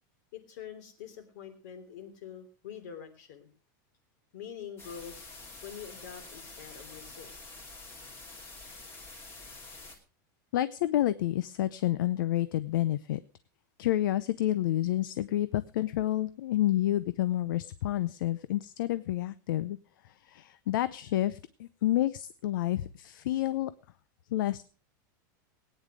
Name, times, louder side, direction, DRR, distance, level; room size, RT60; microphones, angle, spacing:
voice 1, 0.3-3.5 4.3-5.3 5.6-7.4, left 8 dB, 60° left, 8 dB, 3.2 m, -45 dB
sound 1, 4.8-10.0, left 3 dB, 20° left, 2.5 m, -47 dB
voice 2, 10.5-13.2 13.8-19.8 20.0-23.7 24.3-24.6, left 13 dB, 75° left, 15 dB, 0.7 m, -29 dB
18.5 x 9.5 x 5.0 m, 0.39 s
supercardioid pair, 175°, 11 cm